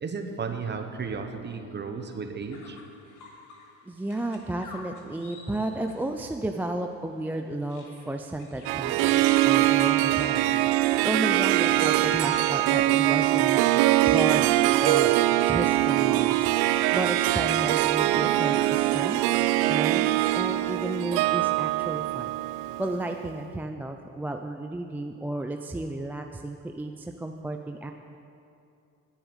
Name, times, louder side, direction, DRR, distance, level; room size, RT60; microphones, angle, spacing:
voice 1, 0.0-2.8, right 5 dB, 25° right, 6 dB, 1.1 m, -34 dB
sound 1, 2.5-3.7 4.0-6.0 7.6-12.7, left 3 dB, 50° left, 2.1 m, -47 dB
voice 2, 3.9-13.6 14.1-15.2 15.4-22.3 22.8-27.9, right 1 dB, 5° right, 4 dB, 0.3 m, -33 dB
Harp, 8.7-23.1, right 15 dB, 80° right, 0.5 m, -23 dB
10.5 x 7.2 x 8.9 m, 2.6 s
cardioid pair, 115°, 38 cm